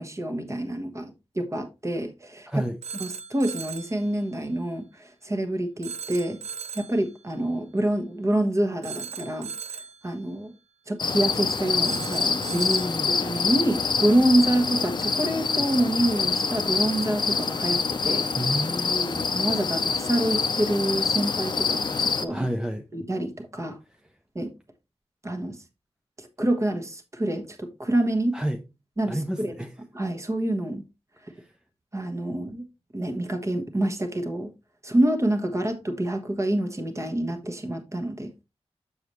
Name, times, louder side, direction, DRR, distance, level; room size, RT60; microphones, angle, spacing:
voice 1, 0.0-2.5 3.0-6.4 6.7-9.5 10.0-10.5 10.9-12.7 13.1-18.3 19.3-22.5 22.9-23.8 24.3-24.5 25.2-25.6 26.2-28.4 29.0-29.5 29.9-30.8 31.9-32.6 32.9-34.5 34.8-38.3, right 1 dB, 25° right, 1.3 m, -27 dB
voice 2, 2.5-2.8 12.5-13.2 18.3-19.2 22.3-22.8 28.3-28.6 29.1-29.7 31.3-31.5, equal, 5° right, 0.6 m, -29 dB
Telephone, 2.8-4.0 5.8-7.0 8.8-10.0 11.8-13.0, right 6 dB, 85° right, 0.6 m, -37 dB
sound 1, 11.0-22.2, left 5 dB, 45° left, 0.6 m, -26 dB
7.0 x 6.8 x 3.0 m
wide cardioid pair, 130°, 11 cm